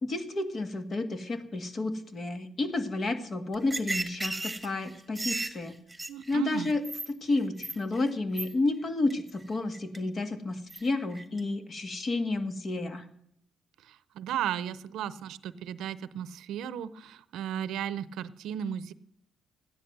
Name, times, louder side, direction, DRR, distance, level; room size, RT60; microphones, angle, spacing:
voice 1, 0.0-5.8 6.3-6.8 7.1-13.0, left 2 dB, 45° left, 9 dB, 1.8 m, -31 dB
sound 1, 3.5-7.1 7.4-8.1 8.4-8.5 9.1-9.3 9.7-10.0 10.7-10.8 11.2-11.4, right 2 dB, 10° right, 1.7 m, -34 dB
voice 2, 6.1-6.7 13.8-18.9, right 9 dB, 85° right, 17 dB, 0.6 m, -35 dB
14.0 x 10.5 x 6.6 m, 0.71 s
cardioid pair, 90°, 0 cm